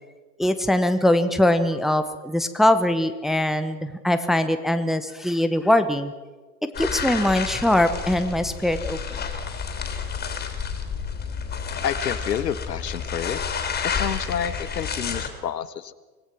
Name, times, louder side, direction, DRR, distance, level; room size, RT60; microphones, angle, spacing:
voice 1, 0.4-6.1 6.8-9.0, left 1 dB, ahead, 9 dB, 0.8 m, -22 dB
sound 1, 6.7-15.3, left 6 dB, 20° left, 3.2 m, -30 dB
voice 2, 11.8-13.4 13.8-15.9, left 9 dB, 75° left, 14 dB, 1.3 m, -29 dB
25.0 x 17.5 x 6.0 m, 1.2 s
hypercardioid pair, 110°, 49 cm